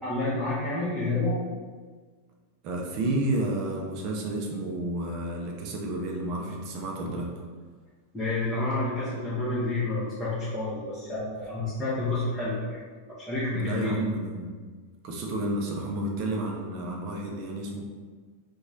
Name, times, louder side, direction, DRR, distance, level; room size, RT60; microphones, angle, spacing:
voice 1, 0.0-1.4 8.1-12.8 13.2-14.0, left 2 dB, 10° left, -11 dB, 0.8 m, -29 dB
voice 2, 2.6-7.3 13.5-14.5 15.0-17.8, right 1 dB, 40° right, 0 dB, 0.6 m, -31 dB
3.0 x 2.3 x 3.8 m, 1.5 s
figure-of-eight pair, 90°, 0 cm